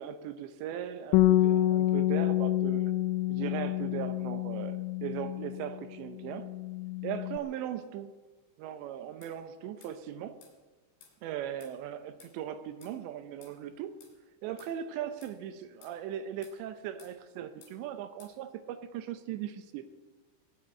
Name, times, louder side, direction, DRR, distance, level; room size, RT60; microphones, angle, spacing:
voice 1, 0.0-2.9 3.3-6.5 7.0-8.1 8.6-10.4 11.2-14.0 14.4-19.8, right 10 dB, 80° right, 10 dB, 2.7 m, -38 dB
Bass guitar, 1.1-5.8 6.1-7.4, left 14 dB, 90° left, 2.5 m, -28 dB
sound 1, 9.2-9.4 9.8-10.0 10.4-10.6 11.0-11.2 11.6-11.8 12.2-12.4 12.8-13.0 13.4-13.6 14.0-14.2 14.6-14.8 15.2-15.4 15.8-16.0 16.4-16.6 17.0-17.2 17.6-17.8 18.2-18.4, left 5 dB, 60° left, 5.3 m, -57 dB
18.5 x 7.8 x 9.7 m, 1.3 s
omnidirectional pair, 5.9 m